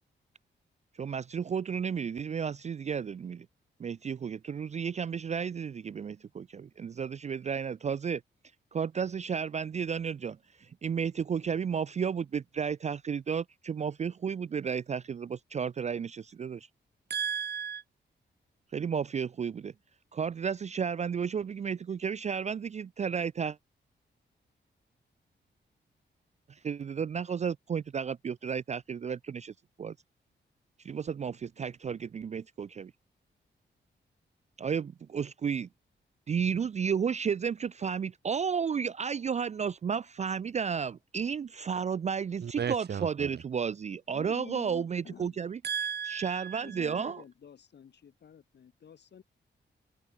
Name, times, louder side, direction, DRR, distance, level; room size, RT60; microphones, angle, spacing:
voice 1, 0.9-3.5 3.8-8.2 8.7-16.7 18.7-19.7 20.1-23.6 26.5-29.9 30.8-32.9 34.6-35.7 36.3-45.6 46.0-47.2, right 6 dB, 40° right, 0.4 m, -33 dB
voice 2, 17.1-17.8 42.4-43.4 45.6-46.9, right 8 dB, 60° right, 1.7 m, -35 dB
voice 3, 44.1-45.4 46.6-49.2, left 8 dB, 65° left, 2.4 m, -49 dB
open air
wide cardioid pair, 135°, 19 cm